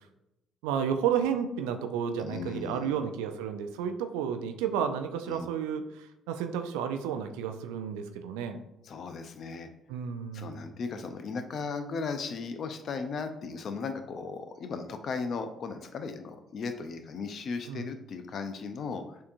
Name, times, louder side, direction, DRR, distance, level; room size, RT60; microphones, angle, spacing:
voice 1, 0.6-8.6 9.9-10.7 17.7-17.9, right 8 dB, 75° right, 7 dB, 0.4 m, -32 dB
voice 2, 2.2-3.0 5.3-5.5 8.8-9.7 10.3-19.2, left 4 dB, 50° left, 8 dB, 0.5 m, -36 dB
6.4 x 2.8 x 2.6 m, 0.88 s
figure-of-eight pair, 45°, 0 cm